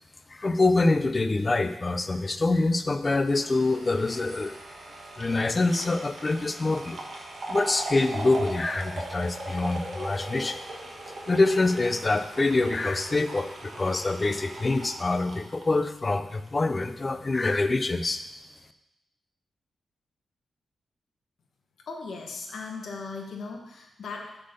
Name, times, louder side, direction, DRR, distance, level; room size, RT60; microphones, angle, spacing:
voice 1, 0.3-4.5 5.2-7.0 7.5-10.6 11.3-18.2, left 2 dB, 25° left, 9 dB, 0.4 m, -25 dB
sound 1, 3.2-16.5 16.8-16.9, right 2 dB, 40° right, 1.3 m, -39 dB
voice 2, 21.9-24.4, left 4 dB, 60° left, 1 dB, 1.0 m, -38 dB
7.6 x 3.7 x 6.6 m, 0.85 s
wide cardioid pair, 175°, 0 cm